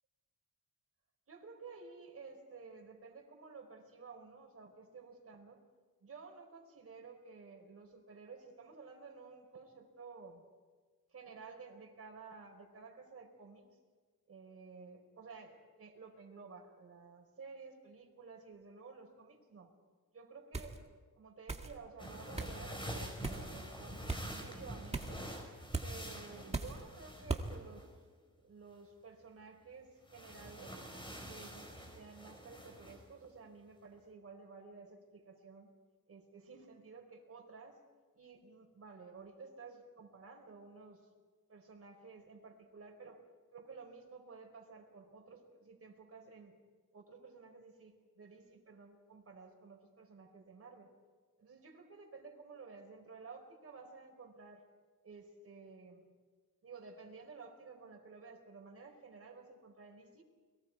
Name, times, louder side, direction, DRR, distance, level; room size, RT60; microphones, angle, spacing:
voice 1, 1.3-5.6 6.0-10.4 11.1-13.7 14.3-19.7 20.1-20.9 21.2-25.2 25.8-27.9 28.3-30.8 31.2-35.7 36.1-37.8 38.1-41.0 41.5-43.2 43.5-46.6 46.9-50.9 51.4-54.6 55.0-56.1 56.6-60.2, right 4 dB, 45° right, 2 dB, 4.6 m, -53 dB
sound 1, 20.5-20.8 21.5-21.7 22.4-22.6 23.2-23.5 24.1-24.2 24.9-25.2 25.7-25.9 26.5-26.8 27.3-27.5, right 3 dB, 20° right, 1.8 m, -38 dB
sound 2, 22.0-28.0 30.1-33.0, equal, 15° left, 5.0 m, -47 dB
29.5 x 22.5 x 4.7 m, 1.4 s
cardioid pair, 115°, 33 cm